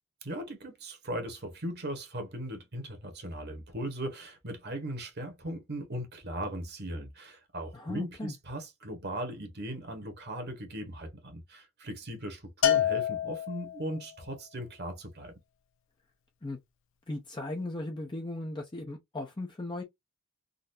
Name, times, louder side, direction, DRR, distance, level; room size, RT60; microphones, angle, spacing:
voice 1, 0.2-15.3, right 1 dB, 50° right, 1.2 m, -38 dB
voice 2, 7.7-8.3 16.4-16.6 17.1-19.8, left 2 dB, 20° left, 0.6 m, -37 dB
Bell, 12.6-14.0, left 10 dB, 60° left, 0.8 m, -27 dB
3.8 x 2.5 x 2.6 m
head